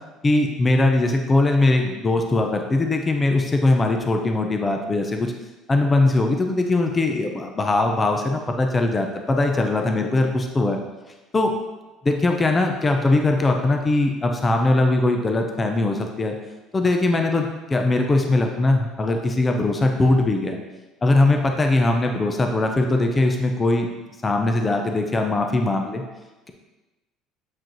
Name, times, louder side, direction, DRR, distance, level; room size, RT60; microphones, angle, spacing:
voice 1, 0.2-5.3 5.7-10.8 11.3-11.5 12.0-16.4 16.7-20.6 21.0-23.9 24.2-26.0, left 2 dB, 15° left, 3 dB, 0.5 m, -20 dB
7.7 x 4.9 x 3.0 m, 1.1 s
cardioid pair, 165°, 0 cm